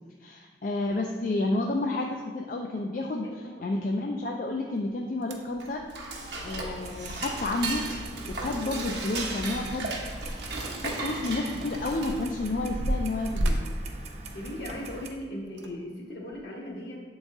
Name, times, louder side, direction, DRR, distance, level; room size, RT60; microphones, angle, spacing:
voice 1, 0.2-5.8 6.4-7.8 8.3-9.9 10.8-13.7, left 2 dB, 45° left, 1 dB, 0.3 m, -30 dB
voice 2, 3.2-3.8 14.3-17.0, left 1 dB, 65° left, -2 dB, 1.2 m, -38 dB
sound 1, 4.8-4.9 5.2-5.6 7.4-7.5 7.7-7.8 8.1-9.9 10.3-10.4 11.1-14.9 15.5-15.7 16.3-16.4, right 1 dB, 85° right, 0.6 m, -33 dB
Dishes pots and pans / Cutlery silverware, 5.5-12.4, right 2 dB, 70° right, 0.9 m, -36 dB
Clock, 6.7-15.1, right 3 dB, 35° right, 0.4 m, -43 dB
7.8 x 3.9 x 3.6 m, 1.5 s
head